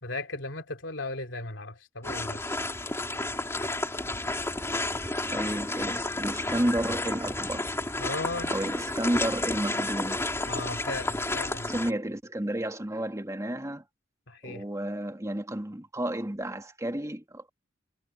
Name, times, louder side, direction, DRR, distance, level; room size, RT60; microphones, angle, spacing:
voice 1, 0.0-2.5 8.0-8.5 10.5-11.7 14.3-14.6, left 2 dB, 75° left, 3.4 m, -36 dB
sound 1, 2.0-11.9, left 2 dB, 15° left, 3.1 m, -31 dB
voice 2, 5.3-7.7 8.5-10.2 11.7-13.8 14.4-17.5, right 1 dB, 15° right, 2.2 m, -31 dB
head